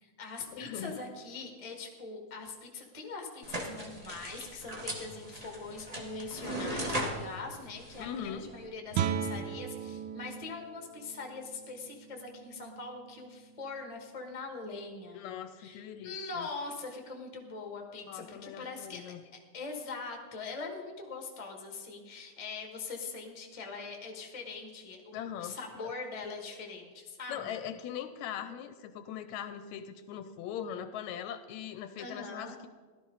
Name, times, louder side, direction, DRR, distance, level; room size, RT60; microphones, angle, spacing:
voice 1, 0.0-15.2 15.6-19.1 19.5-27.5 32.0-32.5, left 4 dB, 20° left, 2 dB, 0.9 m, -42 dB
voice 2, 0.5-1.0 8.0-8.5 15.1-16.5 18.1-19.2 25.1-25.9 27.3-32.7, left 9 dB, 80° left, 11 dB, 1.9 m, -41 dB
sound 1, 3.4-8.7, right 1 dB, 45° right, 0.4 m, -38 dB
Guitar, 8.9-14.5, right 8 dB, 85° right, 2.1 m, -38 dB
16.5 x 12.0 x 4.0 m, 1.5 s
omnidirectional pair, 3.4 m